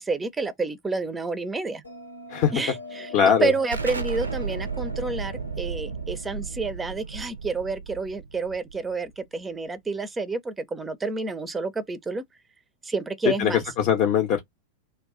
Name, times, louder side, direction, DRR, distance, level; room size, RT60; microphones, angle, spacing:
voice 1, 0.0-1.8 2.5-3.1 3.4-12.2 12.8-13.7, right 3 dB, 10° right, 0.5 m, -29 dB
Bell, 1.8-6.9, left 2 dB, 80° left, 0.8 m, -42 dB
voice 2, 3.1-3.5 13.4-13.5 13.8-14.4, left 8 dB, 40° left, 0.6 m, -20 dB
Explosion, 3.7-9.2, right 5 dB, 80° right, 0.5 m, -33 dB
2.3 x 2.3 x 3.6 m
figure-of-eight pair, 90°, 0 cm